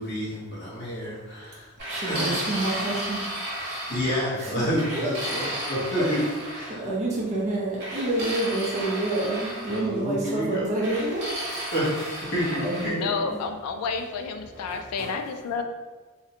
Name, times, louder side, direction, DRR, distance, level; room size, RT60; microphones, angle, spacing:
voice 1, 0.0-1.7 2.1-2.4 3.9-6.2 6.5-6.8 9.7-10.7 11.7-13.1, equal, 50° left, -7 dB, 0.8 m, -29 dB
voice 2, 1.8-3.9 4.4-5.1 5.4-6.3 6.7-11.9 12.5-13.4 14.5-15.2, right 2 dB, 30° right, -4 dB, 0.4 m, -29 dB
sound 1, 1.8-4.3 4.8-6.7 7.8-9.8 10.8-12.9, right 1 dB, 50° right, 0.8 m, -33 dB
voice 3, 12.9-15.6, left 5 dB, 85° left, 5 dB, 0.3 m, -30 dB
2.5 x 2.1 x 2.8 m, 1.3 s
head